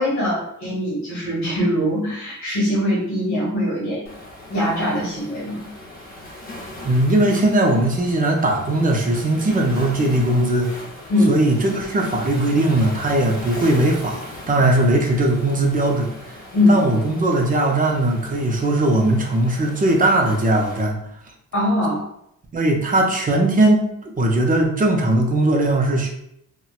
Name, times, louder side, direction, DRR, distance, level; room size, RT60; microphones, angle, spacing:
voice 1, 0.0-4.1 4.5-5.7 11.1-11.4 16.5-16.8 21.5-22.0, left 1 dB, 55° left, -6 dB, 1.5 m, -21 dB
Waves surf, 4.1-20.8, left 1 dB, 30° left, 0.7 m, -39 dB
voice 2, 6.8-10.7 11.3-16.1 16.7-21.0 22.5-23.9 24.2-26.1, right 1 dB, 25° right, 0 dB, 0.4 m, -19 dB
4.1 x 2.1 x 2.3 m, 0.75 s
wide cardioid pair, 180°, 33 cm